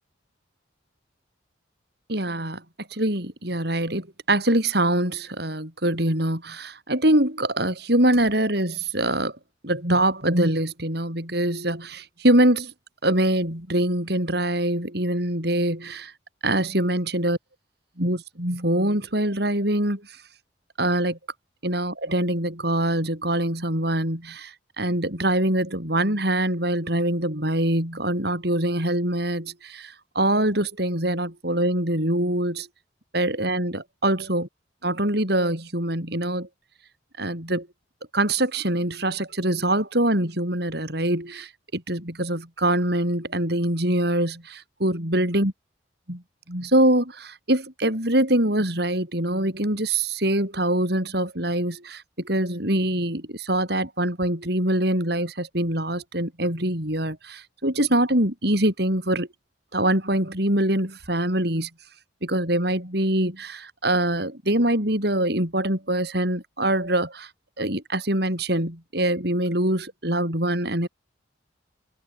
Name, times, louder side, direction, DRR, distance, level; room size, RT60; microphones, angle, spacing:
voice 1, 2.1-2.6 2.9-9.4 9.6-12.7 13.0-16.1 16.4-17.4 18.0-20.2 20.8-21.2 21.6-32.7 33.1-34.5 34.8-36.5 37.2-37.7 38.1-45.5 46.1-46.2 46.5-59.3 59.7-61.7 62.2-67.3 67.6-70.9, right 1 dB, 55° right, 7.9 m, -24 dB
open air
head